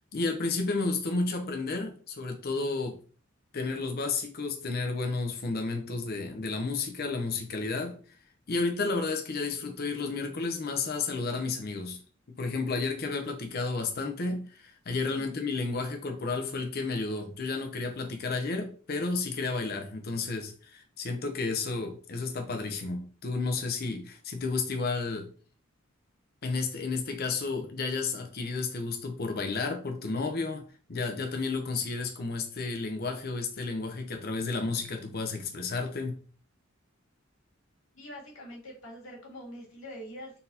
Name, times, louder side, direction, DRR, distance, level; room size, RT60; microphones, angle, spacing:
voice 1, 0.1-3.0 3.5-8.0 8.5-12.0 12.3-25.3 26.4-30.6 30.9-36.1, left 3 dB, 50° left, 5 dB, 0.7 m, -32 dB
voice 2, 37.9-40.4, equal, 90° left, -2 dB, 2.0 m, -44 dB
4.0 x 4.0 x 2.7 m, 0.40 s
head